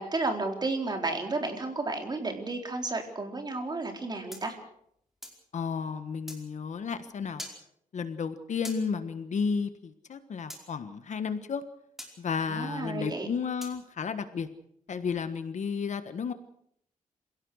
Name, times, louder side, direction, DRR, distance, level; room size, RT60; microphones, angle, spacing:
voice 1, 0.0-4.5 12.5-13.3, right 3 dB, 30° right, 3 dB, 4.1 m, -32 dB
sound 1, 4.3-5.4 6.3-6.4 7.4-7.6 8.6-8.8 10.5-10.6 12.0-12.1 13.6-13.8, equal, ahead, 5.0 m, -43 dB
voice 2, 5.5-7.4 7.9-11.6 12.2-14.5 14.9-16.3, left 6 dB, 60° left, 10 dB, 1.4 m, -32 dB
27.0 x 17.0 x 6.4 m, 0.72 s
wide cardioid pair, 145°, 14 cm